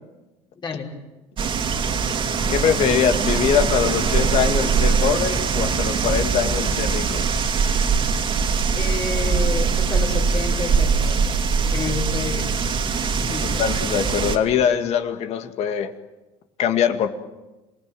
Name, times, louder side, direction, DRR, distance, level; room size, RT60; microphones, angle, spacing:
voice 1, 0.6-0.9 8.8-12.5 13.3-13.6, left 5 dB, 40° left, 1 dB, 5.2 m, -30 dB
sound 1, 1.4-14.4, right 5 dB, 40° right, 2.7 m, -22 dB
voice 2, 2.5-7.2 13.6-15.9 16.6-17.1, left 8 dB, 55° left, 7 dB, 2.2 m, -22 dB
27.0 x 19.5 x 9.2 m, 1.1 s
supercardioid pair, 100°, 13 cm